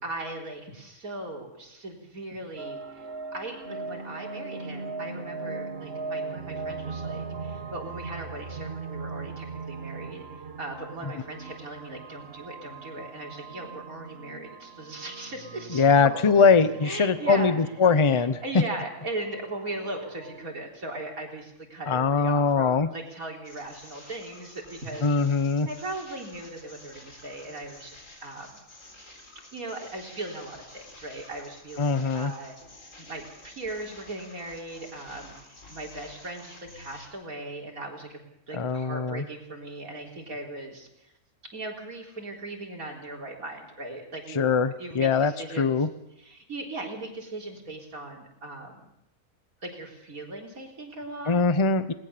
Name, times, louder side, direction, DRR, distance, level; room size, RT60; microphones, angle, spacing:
voice 1, 0.0-25.1 25.4-28.6 29.5-32.6 33.0-41.1 41.5-45.9 46.2-48.9 49.6-51.4, right 2 dB, 70° right, 0 dB, 4.2 m, -38 dB
sound 1, 2.6-20.4, right 4 dB, 40° right, 1.6 m, -39 dB
voice 2, 15.7-18.4 21.9-22.9 25.0-25.7 31.8-32.3 38.5-39.2 44.4-45.3 45.6-45.9 51.3-51.9, left 5 dB, 25° left, 13 dB, 0.7 m, -22 dB
sound 2, 23.4-37.1, left 2 dB, 55° left, 4.4 m, -50 dB
20.5 x 19.0 x 6.9 m, 0.84 s
omnidirectional pair, 1.6 m